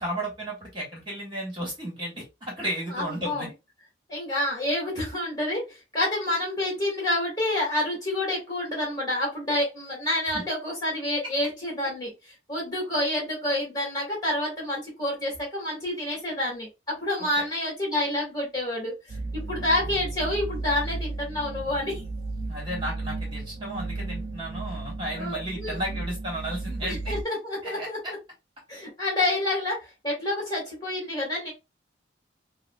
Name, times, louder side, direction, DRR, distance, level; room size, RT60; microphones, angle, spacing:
voice 1, 0.0-3.5 17.2-17.4 22.5-27.1 27.6-28.1, right 1 dB, 25° right, -3 dB, 1.3 m, -33 dB
voice 2, 2.9-3.5 4.1-12.1 12.5-22.0 25.1-25.8 26.8-28.2 28.7-31.5, left 1 dB, 20° left, -3 dB, 1.6 m, -28 dB
sound 1, 19.1-27.2, right 3 dB, 50° right, 0.4 m, -34 dB
4.6 x 2.0 x 2.2 m, 0.24 s
head